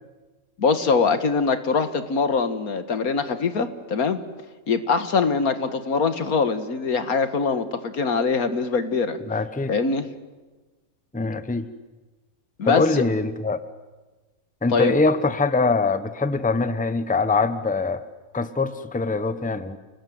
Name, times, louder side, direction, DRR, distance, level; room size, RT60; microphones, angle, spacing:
voice 1, 0.6-4.2 4.7-9.2 9.7-10.1 12.6-13.0 14.7-14.9, left 4 dB, 80° left, 11 dB, 2.1 m, -23 dB
voice 2, 9.3-9.7 11.1-11.7 12.6-13.6 14.6-18.0 18.3-19.8, left 3 dB, 5° left, 12 dB, 0.9 m, -23 dB
30.0 x 20.5 x 9.4 m, 1.2 s
omnidirectional pair, 1.5 m